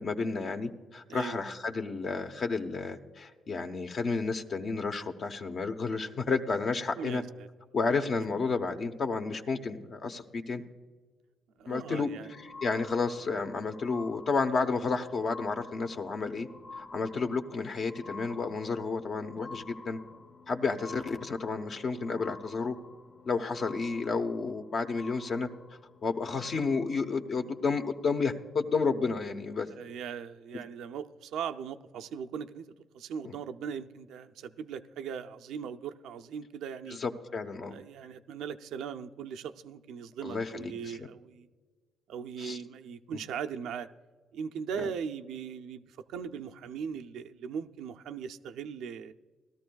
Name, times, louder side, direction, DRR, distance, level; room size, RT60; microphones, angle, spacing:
voice 1, 0.0-7.2 7.7-10.6 11.7-12.1 12.6-16.5 16.8-20.0 20.5-22.8 23.3-25.5 26.0-29.7 33.2-33.3 37.0-37.8 40.2-41.1 42.4-42.6 44.8-44.9, left 4 dB, 55° left, 5 dB, 0.9 m, -31 dB
voice 2, 7.0-7.5 11.6-12.3 29.6-32.7 32.9-37.0 37.7-41.5 42.1-43.9 44.3-49.1, right 7 dB, 85° right, 8 dB, 0.5 m, -39 dB
sound 1, 11.6-28.4 29.2-29.3, left 3 dB, 75° left, 1.5 m, -50 dB
18.5 x 13.0 x 2.3 m, 1.4 s
cardioid pair, 90°, 0 cm